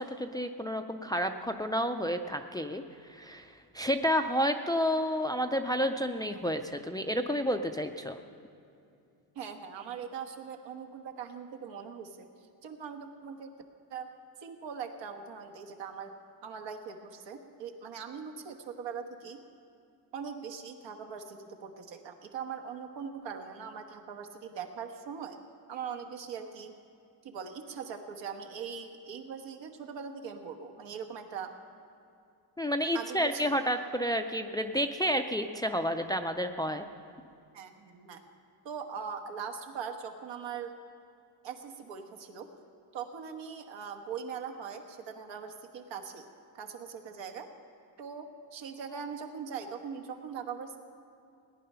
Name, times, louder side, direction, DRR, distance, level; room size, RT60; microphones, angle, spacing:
voice 1, 0.0-2.8 3.1-8.2 32.6-36.8, equal, 10° left, 6 dB, 0.3 m, -30 dB
voice 2, 9.3-12.3 12.6-13.5 13.9-14.1 14.4-16.2 16.4-19.4 20.1-25.4 25.7-26.7 27.2-31.5 32.9-33.5 37.5-38.2 38.6-40.7 41.4-42.5 42.9-46.3 46.5-47.5 48.0-50.8, right 6 dB, 85° right, 5 dB, 1.4 m, -41 dB
18.0 x 10.0 x 5.5 m, 2.5 s
cardioid pair, 145°, 43 cm